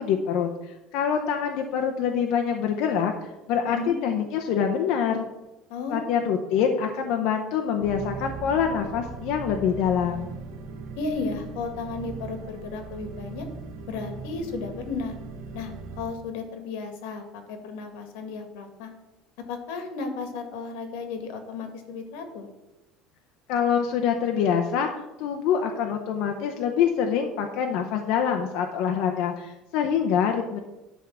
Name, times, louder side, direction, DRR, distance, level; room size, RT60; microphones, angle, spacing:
voice 1, 0.0-3.1 3.5-5.3 5.9-10.3 23.5-24.9 25.2-30.6, left 7 dB, 55° left, 3 dB, 0.8 m, -25 dB
voice 2, 3.6-4.0 5.7-6.1 11.0-13.5 13.9-15.2 15.5-15.7 16.0-18.9 19.4-22.5, left 4 dB, 85° left, 6 dB, 1.7 m, -34 dB
sound 1, 7.8-16.0, right 4 dB, 55° right, 1.3 m, -39 dB
11.0 x 3.7 x 7.2 m, 0.98 s
cardioid pair, 180°, 0 cm